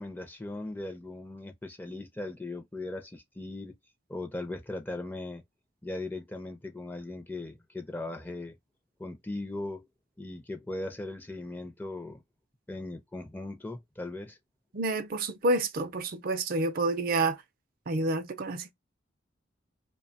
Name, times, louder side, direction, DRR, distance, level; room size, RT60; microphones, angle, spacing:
voice 1, 0.0-3.7 4.1-5.4 5.8-8.6 9.0-9.9 10.2-12.2 12.7-14.4, left 2 dB, 10° left, 0.4 m, -38 dB
voice 2, 14.7-17.4 17.9-18.7, right 2 dB, 45° right, 0.4 m, -29 dB
2.7 x 2.1 x 2.7 m
head